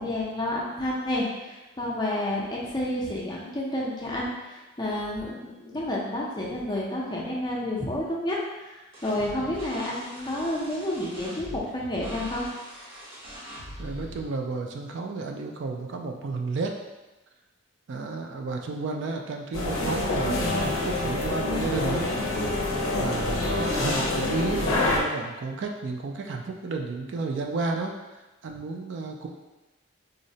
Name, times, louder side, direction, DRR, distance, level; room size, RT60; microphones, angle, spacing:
voice 1, 0.0-12.5, left 1 dB, 20° left, -3 dB, 0.4 m, -30 dB
sound 1, 8.9-14.2, equal, 75° right, 1.0 m, -41 dB
voice 2, 13.8-16.8 17.9-22.1 23.0-29.3, right 3 dB, 55° right, 2 dB, 0.3 m, -32 dB
sound 2, 19.5-25.0, left 2 dB, 80° left, 0.5 m, -26 dB
3.8 x 2.1 x 2.7 m, 1.1 s
head